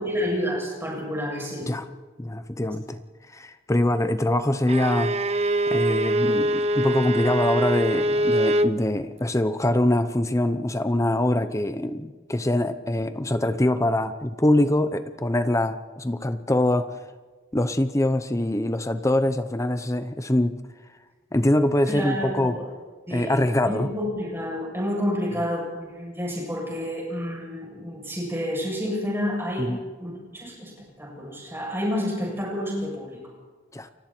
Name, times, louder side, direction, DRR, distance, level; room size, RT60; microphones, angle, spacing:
voice 1, 0.0-1.7 21.9-22.6 23.1-23.4 23.7-29.7 30.0-33.2, equal, 10° right, -2 dB, 7.7 m, -29 dB
voice 2, 2.2-3.0 3.3-5.1 5.7-17.0 17.5-20.6 21.3-22.6 23.1-23.9 29.6-29.8 33.7-33.9, left 1 dB, 15° left, 10 dB, 0.8 m, -24 dB
Bowed string instrument, 4.7-8.8, right 1 dB, 30° right, 0.7 m, -23 dB
29.5 x 24.0 x 4.5 m, 1.3 s
head